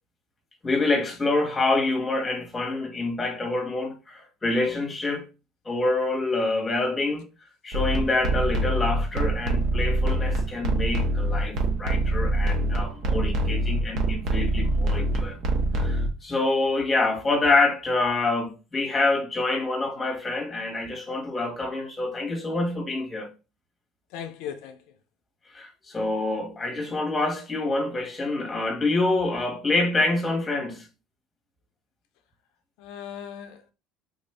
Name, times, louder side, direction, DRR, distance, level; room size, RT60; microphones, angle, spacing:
voice 1, 0.6-5.3 5.6-7.3 7.6-15.4 15.8-23.3 25.5-30.9, left 2 dB, 20° left, 1.1 m, -26 dB
sound 1, 7.7-16.1, right 1 dB, 65° right, 0.9 m, -25 dB
voice 2, 24.1-24.8 32.8-33.7, left 8 dB, 75° left, 0.4 m, -37 dB
3.7 x 2.5 x 3.3 m
cardioid pair, 120°, 0 cm